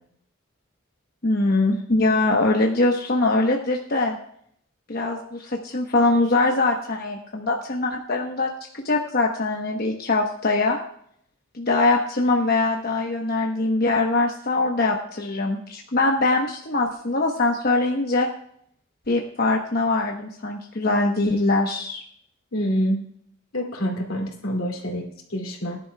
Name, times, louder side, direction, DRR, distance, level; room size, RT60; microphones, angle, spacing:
voice 1, 1.2-4.2 4.9-10.8 11.5-18.3 19.1-22.0, left 2 dB, 50° left, 1 dB, 1.0 m, -22 dB
voice 2, 22.5-23.0 23.5-25.8, equal, 85° left, 1 dB, 2.6 m, -27 dB
18.5 x 11.0 x 2.3 m, 0.65 s
head